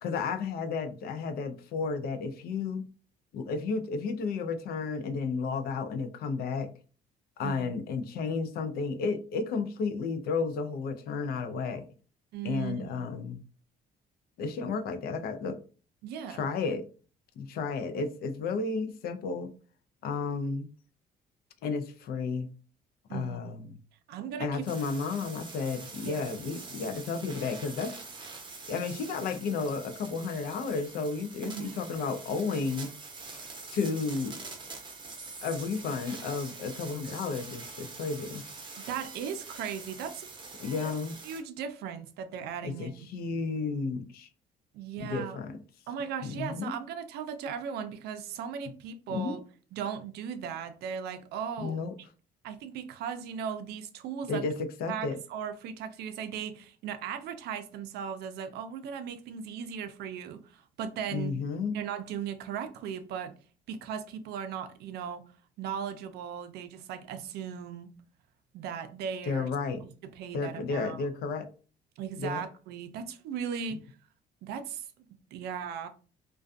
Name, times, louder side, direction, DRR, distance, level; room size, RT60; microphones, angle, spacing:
voice 1, 0.0-2.8 3.3-6.7 7.4-11.9 12.4-13.4 14.4-15.6 16.3-16.9 17.4-19.5 20.0-20.7 21.6-22.5 23.1-23.6 24.4-27.9 28.7-32.9 33.7-34.4 35.4-38.4 40.6-41.2 42.6-44.3 45.0-45.6 46.2-46.7 49.1-49.4 51.6-51.9 54.3-55.2 61.1-61.8 69.3-69.8 70.3-71.5 72.2-72.4 73.7-73.8, left 4 dB, 65° left, 0.4 m, -32 dB
voice 2, 12.3-13.1 16.0-16.5 23.1-23.6 24.1-24.7 26.0-26.3 31.4-31.7 38.8-40.3 40.8-40.9 41.2-42.9 44.7-45.4 45.9-49.4 49.7-51.8 52.4-54.4 54.9-61.3 61.7-63.3 63.7-65.2 65.6-67.9 68.5-69.5 69.8-69.9 70.2-71.0 72.0-73.8 74.4-74.9 75.3-75.9, right 7 dB, 75° right, 0.4 m, -37 dB
sound 1, 24.6-41.4, right 3 dB, 30° right, 0.7 m, -45 dB
2.3 x 2.2 x 2.5 m
cardioid pair, 110°, 17 cm